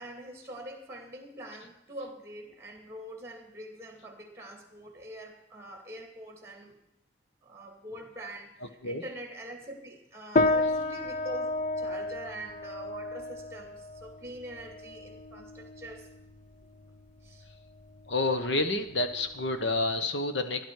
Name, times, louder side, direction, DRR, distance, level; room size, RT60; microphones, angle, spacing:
voice 1, 0.0-6.8 7.4-16.1 17.2-17.5, right 1 dB, 15° right, 4 dB, 2.5 m, -44 dB
sound 1, 10.4-20.0, left 2 dB, 35° left, 0.5 m, -32 dB
voice 2, 18.1-20.6, left 2 dB, 60° left, 8 dB, 1.3 m, -29 dB
16.0 x 11.5 x 4.9 m, 0.82 s
head